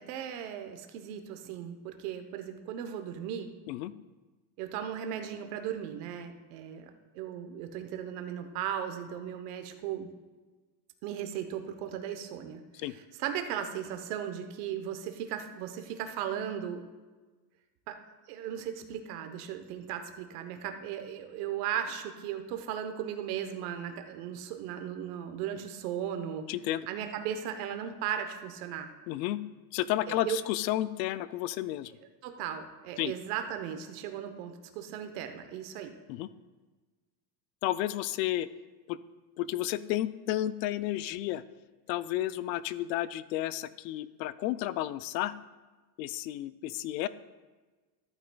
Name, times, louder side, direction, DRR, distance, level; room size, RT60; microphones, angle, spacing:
voice 1, 0.0-3.5 4.6-10.1 11.0-16.8 17.9-18.0 18.3-26.5 26.9-28.9 30.1-30.4 32.2-35.9, right 9 dB, 65° right, 6 dB, 1.1 m, -37 dB
voice 2, 26.5-26.9 29.1-29.4 29.7-31.9 33.0-33.1 36.1-36.3 37.6-38.5 38.9-39.0 39.4-41.4 41.9-45.3 46.0-47.1, left 14 dB, 80° left, 15 dB, 0.6 m, -32 dB
14.0 x 9.1 x 2.3 m, 1.3 s
cardioid pair, 165°, 50 cm